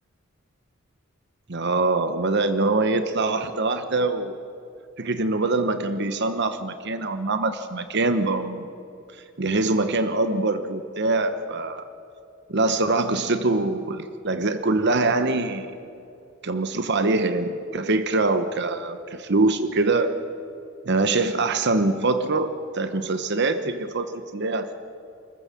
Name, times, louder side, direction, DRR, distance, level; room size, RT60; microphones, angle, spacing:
voice 1, 1.5-4.4 5.0-8.6 9.4-11.8 12.5-15.7 16.4-20.1 20.9-24.7, right 3 dB, 60° right, 9 dB, 1.0 m, -24 dB
26.0 x 14.5 x 7.4 m, 2.5 s
head